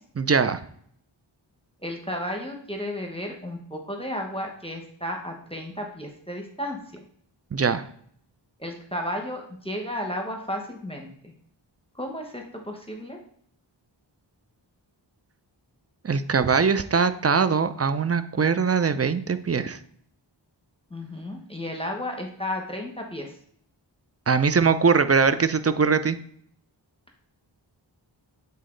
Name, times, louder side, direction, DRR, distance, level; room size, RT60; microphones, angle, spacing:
voice 1, 0.2-0.6 7.5-7.8 16.0-19.8 24.3-26.2, right 5 dB, 30° right, 12 dB, 0.5 m, -21 dB
voice 2, 1.8-7.0 8.6-11.3 12.0-13.2 20.9-23.3, left 1 dB, 10° left, 1 dB, 1.2 m, -33 dB
8.4 x 3.9 x 3.9 m, 0.64 s
wide cardioid pair, 45°, 47 cm